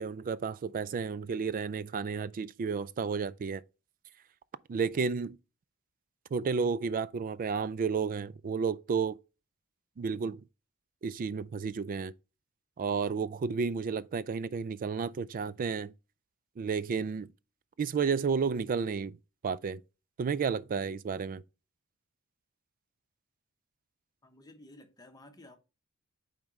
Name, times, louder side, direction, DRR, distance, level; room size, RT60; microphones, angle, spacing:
voice 1, 0.0-3.6 4.7-5.4 6.3-9.2 10.0-10.4 11.0-12.1 12.8-15.9 16.6-17.3 17.8-19.2 19.4-19.8 20.2-21.4, right 5 dB, 40° right, 0.3 m, -32 dB
voice 2, 24.2-25.6, left 1 dB, 15° left, 1.0 m, -54 dB
8.8 x 3.6 x 3.1 m
head